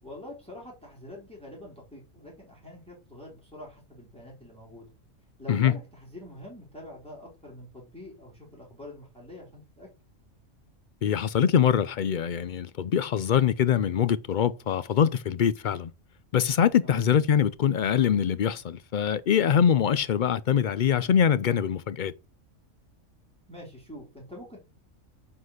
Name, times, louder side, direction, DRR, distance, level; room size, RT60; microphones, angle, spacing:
voice 1, 0.0-4.9 5.4-9.9 16.8-17.0 23.5-24.6, left 1 dB, 5° left, 3.8 m, -45 dB
voice 2, 11.0-15.9 16.3-22.1, left 8 dB, 70° left, 0.4 m, -23 dB
9.3 x 4.1 x 6.5 m
omnidirectional pair, 1.4 m